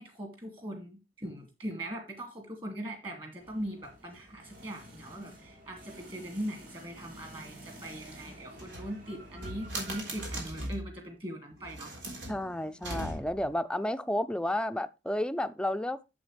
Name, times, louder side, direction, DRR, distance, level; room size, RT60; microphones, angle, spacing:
voice 1, 0.0-11.9, right 1 dB, 30° right, 2.4 m, -40 dB
sound 1, 3.4-10.2, right 1 dB, 55° right, 5.0 m, -51 dB
sound 2, 8.5-10.9 11.6-13.5, right 1 dB, 85° right, 3.7 m, -39 dB
voice 2, 12.3-16.0, left 1 dB, 5° left, 0.5 m, -31 dB
11.0 x 7.2 x 3.3 m
head